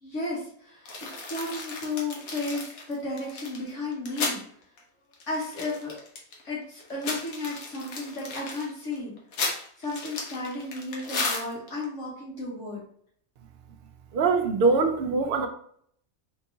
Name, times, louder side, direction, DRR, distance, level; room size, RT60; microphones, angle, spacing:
voice 1, 0.0-4.4 5.3-6.0 6.4-9.2 9.8-12.8, left 2 dB, 60° left, -5 dB, 1.4 m, -34 dB
sound 1, 0.9-4.4 4.8-4.9 5.1-6.4 6.8-11.8, left 3 dB, 80° left, 1.3 m, -34 dB
voice 2, 14.1-15.5, right 4 dB, 65° right, 5 dB, 0.6 m, -23 dB
3.6 x 3.0 x 2.7 m, 0.63 s
omnidirectional pair, 1.5 m